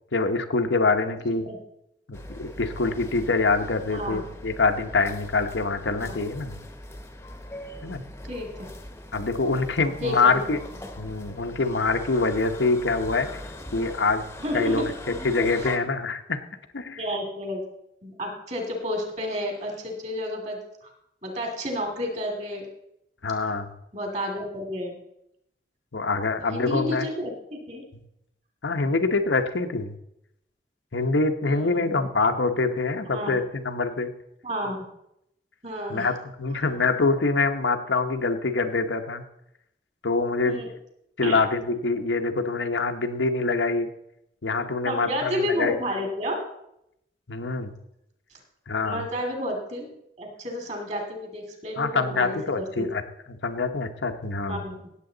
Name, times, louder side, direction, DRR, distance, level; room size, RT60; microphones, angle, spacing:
voice 1, 0.1-1.4 2.1-6.6 7.8-8.0 9.1-10.6 11.0-13.4 13.7-14.2 14.5-14.9 15.2-16.4 16.7-17.0 23.2-23.7 25.9-27.1 28.6-29.9 30.9-34.1 35.9-39.2 40.0-40.6 41.2-43.9 44.4-45.8 47.3-47.7 48.7-49.1 51.8-53.0 53.3-54.6, left 3 dB, 90° left, 7 dB, 1.0 m, -25 dB
voice 2, 1.2-1.6 3.9-4.3 5.9-6.1 8.3-8.7 10.0-10.4 14.4-14.9 15.5-15.7 17.0-17.6 18.0-20.6 21.2-22.7 23.4-23.5 23.9-25.0 26.5-27.8 31.4-32.1 33.0-33.4 34.4-34.8 35.6-36.1 40.4-40.7 41.2-41.4 44.8-46.4 48.8-52.9 54.5-54.8, equal, 40° right, 3 dB, 2.4 m, -31 dB
sound 1, 2.1-15.8, left 1 dB, 15° left, 0.8 m, -40 dB
17.0 x 7.5 x 3.9 m, 0.80 s
head